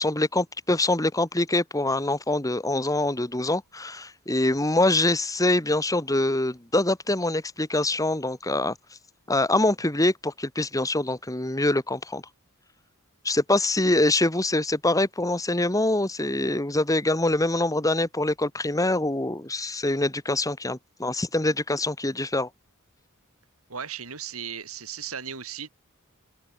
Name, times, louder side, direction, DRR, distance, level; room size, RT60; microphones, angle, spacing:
voice 1, 0.0-8.8 9.3-12.2 13.2-22.5, left 2 dB, 15° left, 2.0 m, -24 dB
voice 2, 23.7-25.7, right 7 dB, 75° right, 3.5 m, -36 dB
open air
head